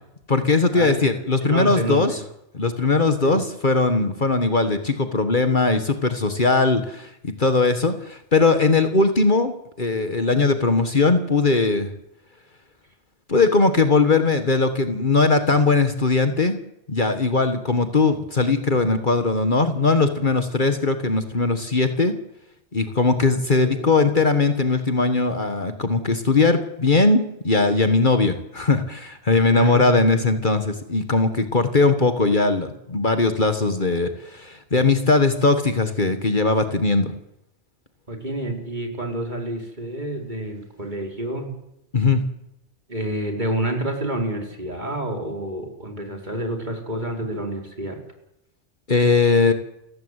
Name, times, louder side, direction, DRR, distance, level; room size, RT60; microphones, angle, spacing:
voice 1, 0.3-2.2 2.5-11.9 13.3-16.6 16.9-22.1 22.7-37.1 41.9-42.2 48.9-49.5, left 3 dB, 45° left, 8 dB, 1.7 m, -20 dB
voice 2, 1.4-2.2 3.2-3.4 23.6-23.9 29.5-30.0 38.1-41.5 42.9-48.0, right 1 dB, 40° right, 2 dB, 4.6 m, -28 dB
28.5 x 15.5 x 8.2 m, 0.84 s
omnidirectional pair, 1.2 m